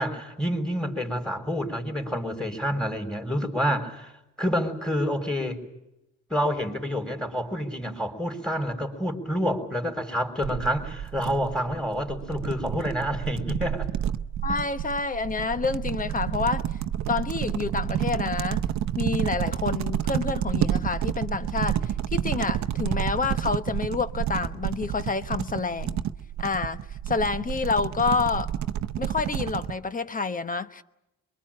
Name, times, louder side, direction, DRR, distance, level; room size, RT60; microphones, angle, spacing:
voice 1, 0.0-4.1 4.4-5.6 6.3-13.9 14.5-14.6, equal, 5° left, 3.9 m, -28 dB
sound 1, 10.4-29.7, right 10 dB, 65° right, 0.9 m, -30 dB
voice 2, 14.4-16.6 17.1-18.6 19.0-26.0 26.4-26.8 27.1-28.5 29.0-30.8, left 4 dB, 25° left, 1.1 m, -28 dB
23.5 x 22.5 x 8.7 m
cardioid pair, 90°, 30 cm